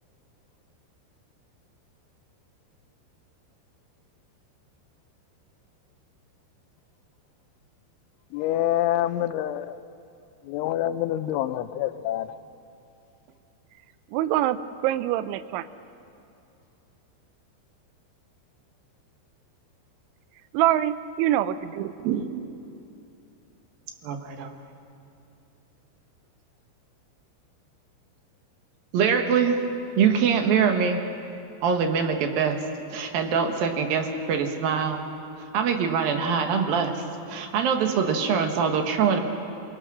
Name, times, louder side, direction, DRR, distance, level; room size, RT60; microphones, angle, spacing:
voice 1, 8.3-9.8 10.4-12.4, left 12 dB, 85° left, 3.1 m, -26 dB
voice 2, 14.1-15.7 20.5-21.9, right 13 dB, 85° right, 3.1 m, -24 dB
voice 3, 24.0-24.5 28.9-29.6 30.0-31.0 31.6-32.6 32.9-35.0 35.5-39.2, right 6 dB, 65° right, 2.7 m, -23 dB
27.5 x 21.5 x 6.1 m
omnidirectional pair, 5.4 m